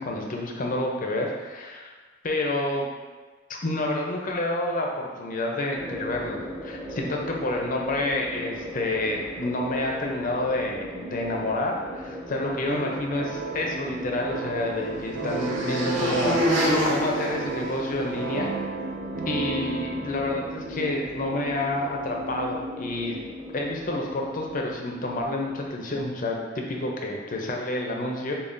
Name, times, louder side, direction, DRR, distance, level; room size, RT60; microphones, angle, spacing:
voice 1, 0.0-1.9 2.2-2.9 3.5-18.5 19.3-23.2 23.5-28.3, left 1 dB, 40° left, 0 dB, 0.6 m, -29 dB
sound 1, 5.7-25.7, left 1 dB, 5° right, 0.7 m, -38 dB
sound 2, 12.7-21.7, right 5 dB, 45° right, 0.3 m, -34 dB
sound 3, 13.7-18.3, equal, 65° right, 1.2 m, -28 dB
6.7 x 2.3 x 2.6 m, 1.3 s
head